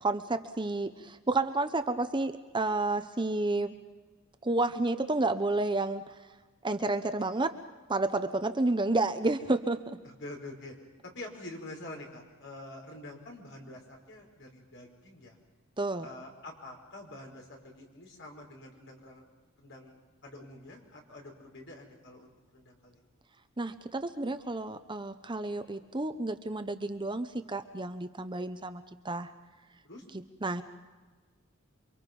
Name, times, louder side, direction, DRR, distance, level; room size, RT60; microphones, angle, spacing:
voice 1, 0.0-3.7 4.4-6.0 6.6-7.6 7.9-10.0 15.8-16.1 23.6-29.3 30.4-30.6, right 2 dB, 25° right, 9 dB, 0.9 m, -30 dB
voice 2, 10.0-10.7 11.0-15.4 16.0-19.2 19.6-23.0 29.8-30.0, left 2 dB, 60° left, 1 dB, 5.4 m, -47 dB
28.5 x 24.5 x 5.4 m, 1.3 s
head